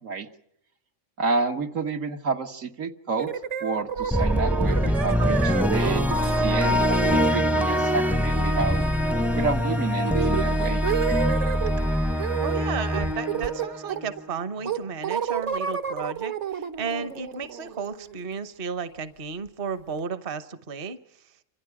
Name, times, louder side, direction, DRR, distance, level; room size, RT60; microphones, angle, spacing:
voice 1, 1.2-3.3 3.6-8.8 9.3-10.8, right 4 dB, 80° right, 4 dB, 2.0 m, -30 dB
sound 1, 3.2-11.7 12.2-12.6 12.9-14.2 14.7-18.4, right 8 dB, 65° right, 1.5 m, -31 dB
sound 2, 4.1-14.3, equal, ahead, 0.5 m, -24 dB
voice 2, 12.4-21.0, right 5 dB, 45° right, 12 dB, 1.2 m, -33 dB
28.5 x 25.5 x 4.9 m, 0.73 s
omnidirectional pair, 1.3 m